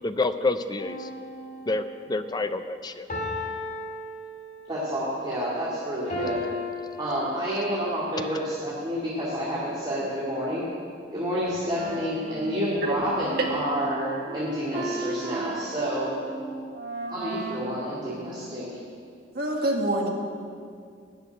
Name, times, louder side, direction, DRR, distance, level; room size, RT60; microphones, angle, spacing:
voice 1, 0.0-1.1 1.7-3.1, left 2 dB, 20° left, 10 dB, 0.5 m, -28 dB
sound 1, 0.8-2.1 3.1-4.8 6.1-7.8 8.5-8.6, left 2 dB, 45° left, 2.4 m, -35 dB
voice 2, 4.7-6.4 7.0-10.6 11.1-16.1 17.1-18.7, equal, 25° right, -9 dB, 2.3 m, -29 dB
Wind instrument woodwind instrument, 11.2-18.7, right 2 dB, 85° right, 1.6 m, -36 dB
voice 3, 19.3-20.1, right 1 dB, 55° right, 0 dB, 1.7 m, -25 dB
12.5 x 6.2 x 9.3 m, 2.3 s
head